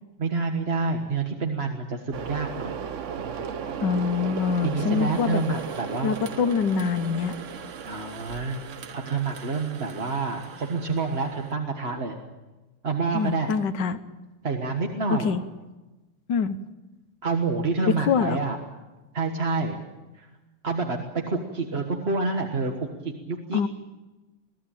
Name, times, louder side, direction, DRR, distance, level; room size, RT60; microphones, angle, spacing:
voice 1, 0.2-2.8 3.2-3.5 4.6-6.2 7.8-12.2 12.8-13.6 14.4-15.4 17.2-18.6 19.1-19.8 20.1-20.3 20.6-23.7, right 4 dB, 30° right, 2 dB, 1.5 m, -28 dB
sound 1, 2.1-11.5, right 6 dB, 55° right, 0.8 m, -36 dB
voice 2, 3.8-5.4 6.0-7.4 13.1-14.0 15.1-15.4 16.3-16.6 17.8-18.4 23.5-23.7, left 6 dB, 60° left, 10 dB, 1.5 m, -25 dB
23.0 x 16.0 x 9.0 m, 1.1 s
omnidirectional pair, 2.4 m